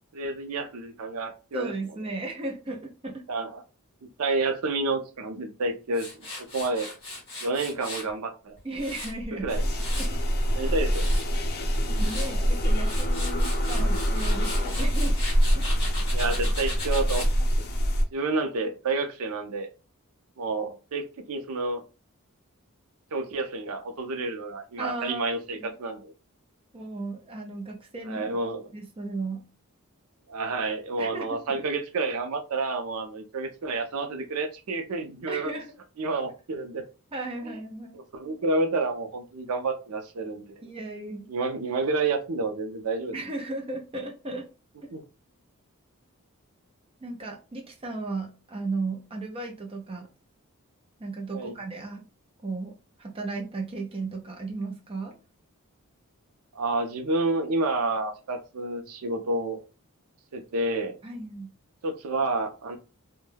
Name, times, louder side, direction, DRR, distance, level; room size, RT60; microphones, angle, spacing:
voice 1, 0.1-1.7 3.3-3.6 4.2-6.1 6.5-6.9 7.4-8.6 9.4-9.7 10.5-11.2 16.1-17.3 17.6-17.7 18.1-19.7 20.4-21.8 23.1-26.1 28.1-28.6 30.3-35.5 36.0-36.8 37.4-37.5 37.9-40.6 41.3-43.1 44.9-45.0 51.3-51.5 56.5-59.6 60.3-60.9 61.8-62.8, right 3 dB, 80° right, 0.5 m, -29 dB
voice 2, 1.5-3.3 8.6-9.5 10.0-10.2 10.6-10.7 11.9-15.2 15.5-15.8 24.8-25.2 25.6-25.7 26.7-28.4 28.7-29.5 31.0-31.7 35.3-35.7 37.1-38.0 40.6-41.3 43.1-44.5 47.0-50.1 51.0-52.0 52.4-55.1 61.0-61.5, right 2 dB, 25° right, 0.5 m, -35 dB
Tools, 5.9-8.1 8.6-10.2 10.7-11.3 11.8-12.3 12.7-17.3, left 2 dB, 25° left, 1.2 m, -38 dB
sound 1, 9.5-18.0, equal, 45° left, 0.5 m, -25 dB
2.2 x 2.1 x 3.2 m
head